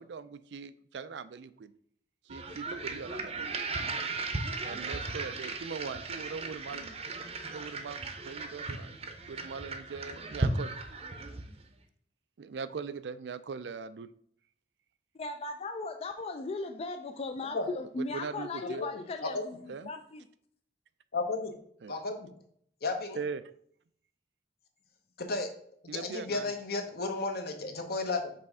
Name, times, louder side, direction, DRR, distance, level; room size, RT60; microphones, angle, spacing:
voice 1, 0.0-1.7 2.3-3.5 4.6-6.9 7.5-8.0 8.2-8.9 9.3-10.7 12.4-14.1 18.1-18.8 19.7-19.9 21.8-22.0 23.1-23.5 25.9-26.5, right 5 dB, 75° right, 14 dB, 0.4 m, -40 dB
sound 1, 2.3-11.6, right 3 dB, 35° right, 0.7 m, -36 dB
voice 2, 15.1-20.3, left 3 dB, 35° left, 6 dB, 0.3 m, -37 dB
voice 3, 21.1-21.5 21.9-22.3 22.8-23.2 25.2-25.5 25.8-28.3, left 3 dB, 60° left, 5 dB, 1.0 m, -33 dB
5.4 x 3.5 x 5.4 m, 0.64 s
head